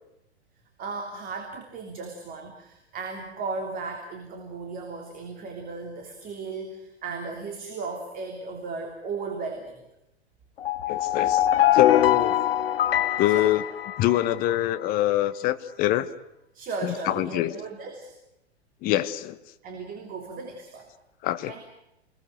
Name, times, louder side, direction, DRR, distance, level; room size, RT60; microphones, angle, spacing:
voice 1, 0.8-9.8 13.3-13.5 16.5-18.1 19.6-20.9 21.5-21.6, right 4 dB, 25° right, 3.3 m, -36 dB
sound 1, 10.6-14.6, left 12 dB, 60° left, 0.9 m, -23 dB
voice 2, 10.9-11.5 11.7-12.4 13.2-13.6 14.0-16.1 16.8-17.5 18.8-19.4 21.2-21.6, left 14 dB, 25° left, 1.1 m, -24 dB
28.0 x 21.0 x 6.5 m
figure-of-eight pair, 105°, 34 cm